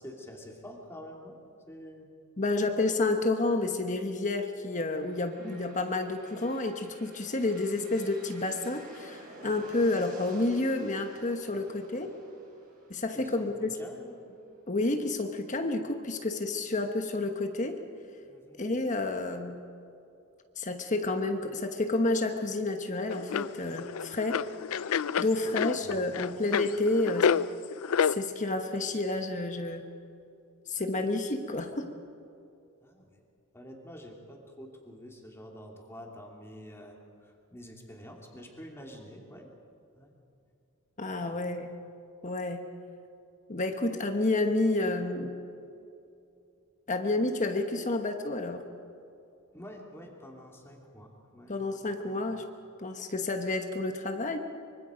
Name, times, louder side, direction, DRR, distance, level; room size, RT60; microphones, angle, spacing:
voice 1, 0.0-1.4 1.7-2.1 11.5-11.6 13.1-14.3 18.3-18.6 25.2-26.1 32.8-33.2 33.5-37.0 37.2-39.5 40.0-40.1 41.2-41.4 49.5-51.5 52.0-52.2, equal, 10° left, 0 dB, 2.9 m, -47 dB
voice 2, 2.4-12.2 12.9-13.7 14.7-17.8 18.6-19.6 20.6-24.4 25.2-27.3 28.0-29.9 30.7-31.9 41.0-41.7 42.2-42.7 43.5-45.3 46.9-48.6 51.5-52.4 52.8-54.4, left 2 dB, 35° left, 5 dB, 1.2 m, -30 dB
sound 1, 4.7-14.6, right 1 dB, 40° right, 4.7 m, -52 dB
sound 2, 23.1-28.1, left 7 dB, 70° left, 0.4 m, -29 dB
24.5 x 24.0 x 5.2 m, 2.6 s
head